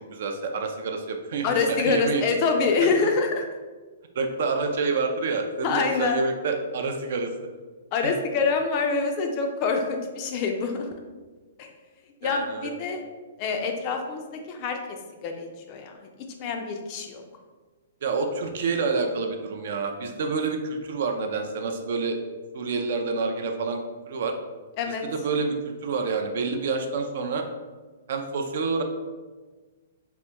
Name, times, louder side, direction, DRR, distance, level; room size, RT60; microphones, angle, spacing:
voice 1, 0.1-2.2 2.8-2.9 4.2-7.3 8.0-8.1 12.2-12.7 18.0-22.2 22.5-23.8 24.1-24.4 24.9-25.6 25.8-27.5 28.1-28.8, right 4 dB, 55° right, 5 dB, 0.4 m, -28 dB
voice 2, 1.4-3.4 5.6-6.2 7.9-10.9 11.6-11.7 12.2-13.0 13.4-14.8 15.2-15.9 16.4-17.2 24.8-25.0, left 4 dB, 30° left, 4 dB, 0.3 m, -26 dB
2.8 x 2.2 x 3.3 m, 1.3 s
hypercardioid pair, 160°, 0 cm